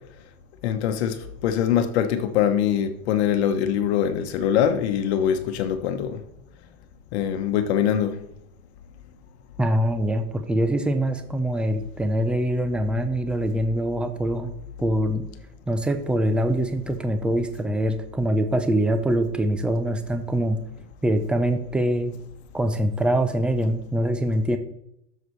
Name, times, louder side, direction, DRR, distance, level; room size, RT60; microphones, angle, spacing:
voice 1, 0.6-6.2 7.1-8.2, left 9 dB, 70° left, 1.1 m, -23 dB
voice 2, 9.6-14.5 14.8-15.2 15.7-20.6 21.0-22.1 22.5-24.6, right 1 dB, 5° right, 0.5 m, -24 dB
12.5 x 6.9 x 3.2 m
supercardioid pair, 140°, 33 cm